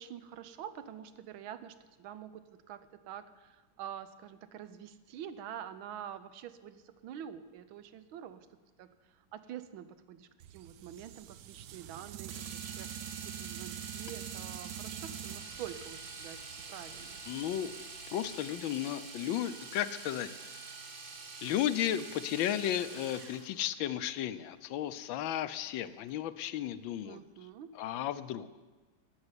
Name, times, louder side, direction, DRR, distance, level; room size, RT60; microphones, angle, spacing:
voice 1, 0.0-17.4 27.0-27.8, right 9 dB, 90° right, 12 dB, 1.6 m, -47 dB
sound 1, 10.4-18.5, right 12 dB, 70° right, 1.1 m, -46 dB
Domestic sounds home sounds, 12.3-23.5 25.7-25.8 26.1-26.2, right 4 dB, 55° right, 1.9 m, -46 dB
voice 2, 17.3-17.7 18.1-20.3 21.4-27.2 27.7-28.5, left 11 dB, 80° left, 13 dB, 1.4 m, -34 dB
12.0 x 7.1 x 9.7 m, 1.2 s
omnidirectional pair, 2.2 m